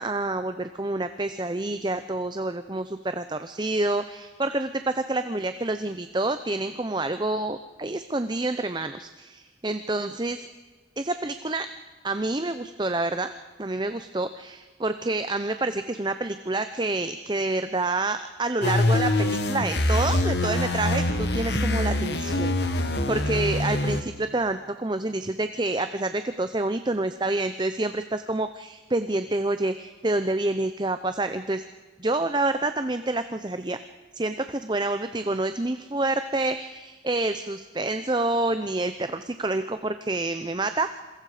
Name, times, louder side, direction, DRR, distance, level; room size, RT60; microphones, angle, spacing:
voice 1, 0.0-10.5 11.0-11.7 12.0-13.3 13.6-31.6 32.0-33.8 34.1-41.0, right 2 dB, 25° right, 10 dB, 0.7 m, -28 dB
sound 1, 18.6-24.0, left 1 dB, 65° left, 1.8 m, -24 dB
27.5 x 22.0 x 5.0 m, 1.4 s
head